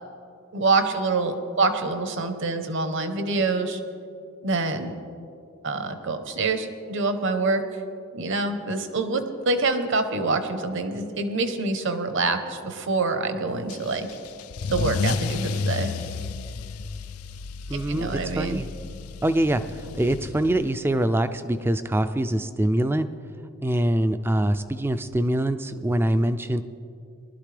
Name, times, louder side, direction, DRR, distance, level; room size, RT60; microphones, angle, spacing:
voice 1, 0.5-3.8 4.4-5.0 5.6-7.6 8.1-14.1 14.7-15.9 17.7-18.6, right 3 dB, 60° right, 8 dB, 0.9 m, -26 dB
Car / Engine starting / Accelerating revving vroom, 13.7-20.9, left 4 dB, 85° left, 0.4 m, -32 dB
voice 2, 17.7-18.7 19.2-23.1 23.6-26.6, right 1 dB, 10° right, 11 dB, 0.3 m, -24 dB
20.0 x 12.0 x 3.3 m, 2.5 s
head